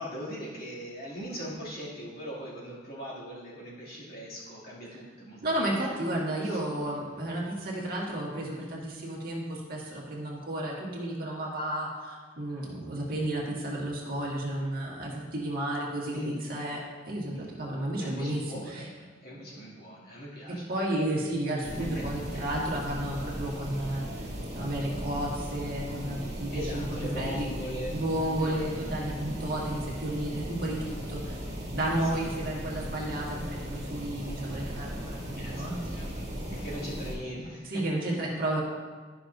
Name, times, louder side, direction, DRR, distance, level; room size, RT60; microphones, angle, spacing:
voice 1, 0.0-5.4 5.7-5.9 6.4-6.6 16.1-16.4 17.3-17.6 18.0-20.9 21.8-22.0 22.3-22.5 26.5-28.0 28.4-28.7 32.0-32.3 35.4-37.8 38.1-38.3, equal, 55° left, -7 dB, 2.5 m, -40 dB
voice 2, 5.4-16.2 16.5-16.8 17.1-18.9 20.7-24.3 24.5-26.9 27.1-27.5 27.9-31.4 31.7-36.1 37.6-38.6, right 1 dB, 50° right, -3 dB, 1.7 m, -32 dB
sound 1, 21.6-37.2, equal, 35° right, 1.9 m, -37 dB
12.0 x 6.0 x 2.6 m, 1.4 s
head